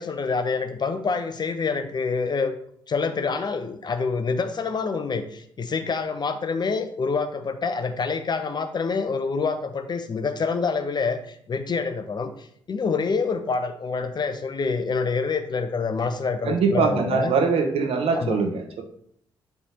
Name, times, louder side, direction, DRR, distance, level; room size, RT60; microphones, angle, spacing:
voice 1, 0.0-2.5 2.9-17.3 18.1-18.4, left 4 dB, 40° left, 9 dB, 0.7 m, -27 dB
voice 2, 16.4-18.8, right 5 dB, 55° right, 4 dB, 1.1 m, -22 dB
8.2 x 3.4 x 4.3 m, 0.66 s
figure-of-eight pair, 40°, 11 cm